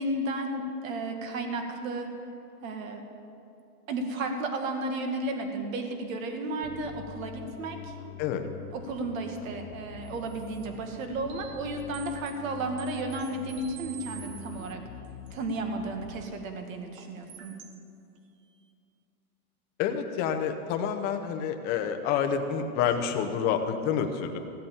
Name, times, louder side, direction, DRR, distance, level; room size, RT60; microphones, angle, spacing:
voice 1, 0.0-2.1 2.6-3.0 3.9-7.9 8.7-14.8 15.3-17.5, right 2 dB, 60° right, 4 dB, 2.0 m, -33 dB
Bass guitar, 6.6-16.2, left 8 dB, 70° left, 1.0 m, -45 dB
sound 1, 10.0-11.6 11.9-14.7 15.0-15.6 17.0-17.8 18.2-18.3, right 9 dB, 20° right, 0.5 m, -49 dB
voice 2, 19.8-24.4, left 7 dB, 20° left, 6 dB, 0.7 m, -28 dB
15.5 x 8.1 x 7.1 m, 2.7 s
supercardioid pair, 155°, 45 cm